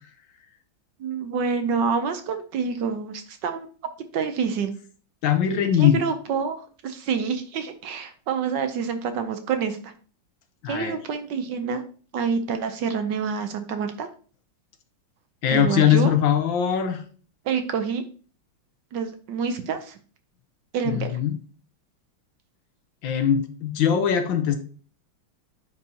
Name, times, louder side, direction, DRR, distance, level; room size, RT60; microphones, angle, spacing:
voice 1, 1.0-3.7 4.1-4.7 5.7-9.9 10.7-11.8 12.1-14.1 15.5-16.1 17.5-18.0 18.9-20.0 20.7-21.1, right 6 dB, 70° right, 8 dB, 1.3 m, -27 dB
voice 2, 5.2-6.0 10.6-11.0 15.4-17.0 20.9-21.4 23.0-24.6, left 9 dB, 70° left, 7 dB, 1.5 m, -21 dB
9.5 x 4.8 x 2.8 m, 0.40 s
omnidirectional pair, 2.2 m